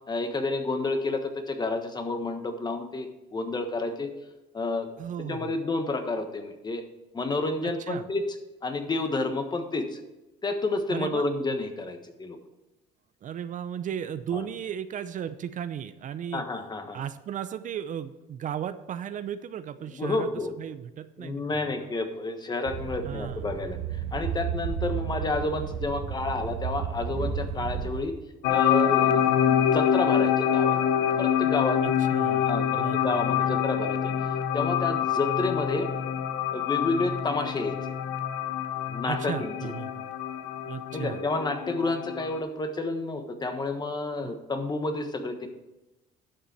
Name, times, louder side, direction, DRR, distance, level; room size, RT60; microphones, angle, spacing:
voice 1, 0.1-4.1 4.5-4.9 5.3-6.8 7.1-8.3 8.6-10.0 10.4-12.4 14.3-14.4 16.3-17.0 20.0-20.5 21.2-23.8 24.1-28.1 28.5-30.8 31.2-31.8 32.3-34.1 34.5-35.9 36.5-37.8 38.9-39.5 40.9-45.5, left 2 dB, 25° left, 7 dB, 1.4 m, -30 dB
voice 2, 5.0-5.6 7.6-8.1 10.9-11.2 13.2-16.4 16.9-20.3 20.6-21.9 23.0-23.5 24.9-25.1 31.8-33.6 39.1-40.1 40.7-41.2 44.2-44.3, right 9 dB, 50° right, 12 dB, 0.6 m, -36 dB
sound 1, 22.7-28.0, right 7 dB, 80° right, 1.6 m, -33 dB
sound 2, 28.4-42.4, left 9 dB, 85° left, 0.8 m, -26 dB
11.5 x 6.8 x 4.5 m, 1.0 s
cardioid pair, 110°, 17 cm